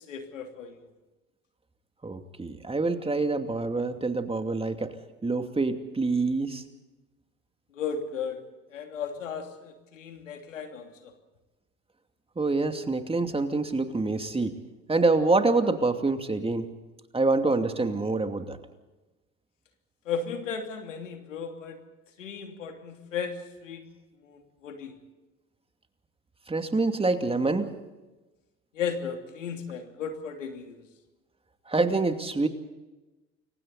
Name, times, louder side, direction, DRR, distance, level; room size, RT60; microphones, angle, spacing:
voice 1, 0.1-0.8 7.7-8.4 8.7-11.1 20.0-21.8 22.2-23.8 24.2-24.9 28.7-30.8, left 6 dB, 85° left, 5 dB, 3.0 m, -35 dB
voice 2, 2.0-4.9 5.2-6.6 12.4-14.5 14.9-16.7 17.1-18.6 26.5-27.7 31.7-32.5, right 3 dB, 15° right, 6 dB, 2.6 m, -26 dB
29.0 x 24.0 x 4.2 m, 1.1 s
hypercardioid pair, 70°, 37 cm